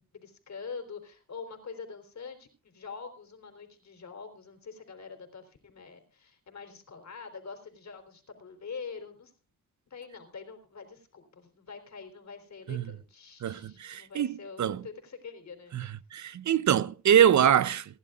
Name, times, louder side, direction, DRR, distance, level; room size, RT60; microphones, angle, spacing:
voice 1, 0.0-9.3 9.9-15.7, left 5 dB, 60° left, 3.8 m, -45 dB
voice 2, 13.4-14.8 15.7-17.8, right 9 dB, 65° right, 0.7 m, -24 dB
28.5 x 11.5 x 2.5 m
cardioid pair, 85°, 31 cm